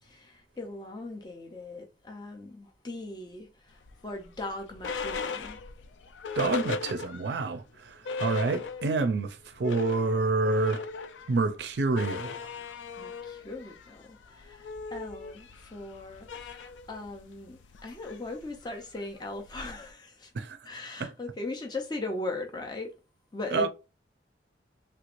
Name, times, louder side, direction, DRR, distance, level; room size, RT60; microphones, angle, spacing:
voice 1, 0.0-5.6 13.0-20.3 20.6-23.0 23.3-23.7, left 2 dB, 25° left, 0.5 m, -39 dB
sound 1, 3.8-7.5 7.8-7.9 8.0-9.1 9.4-19.9, left 4 dB, 85° left, 0.4 m, -38 dB
voice 2, 6.4-10.8 11.3-12.5 20.3-20.6 21.0-21.1 23.5-23.7, right 3 dB, 65° right, 0.4 m, -28 dB
3.2 x 3.1 x 2.5 m
head